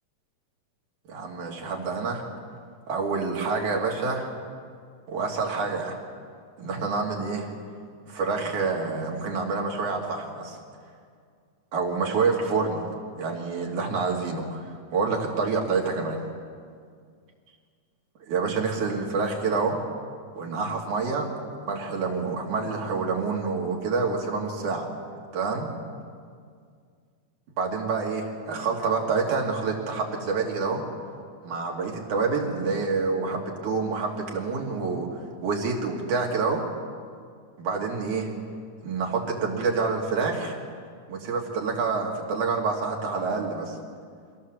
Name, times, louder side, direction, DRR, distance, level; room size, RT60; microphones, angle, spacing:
voice 1, 1.1-2.2 2.9-4.3 5.1-6.0 6.6-7.5 8.0-10.6 11.7-16.2 18.3-19.8 20.4-24.9 25.3-25.7 27.6-30.8 31.4-36.6 37.6-38.3 38.8-40.6 41.1-43.8, right 4 dB, 85° right, -1 dB, 4.0 m, -27 dB
23.5 x 16.5 x 7.6 m, 2.1 s
omnidirectional pair, 3.4 m